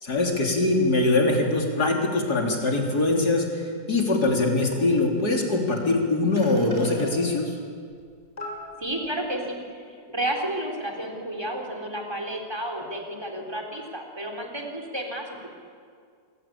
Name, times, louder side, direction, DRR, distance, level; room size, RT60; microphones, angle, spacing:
voice 1, 0.0-7.5, left 2 dB, 70° left, 0 dB, 4.1 m, -23 dB
sound 1, 4.3-4.4 4.7-4.8 6.0-6.1 6.4-7.1 8.0-8.1 8.4-9.1, left 1 dB, 20° left, 6.1 m, -38 dB
voice 2, 8.8-15.3, right 1 dB, 15° right, 1 dB, 4.0 m, -31 dB
28.5 x 23.0 x 8.7 m, 2.1 s
omnidirectional pair, 1.8 m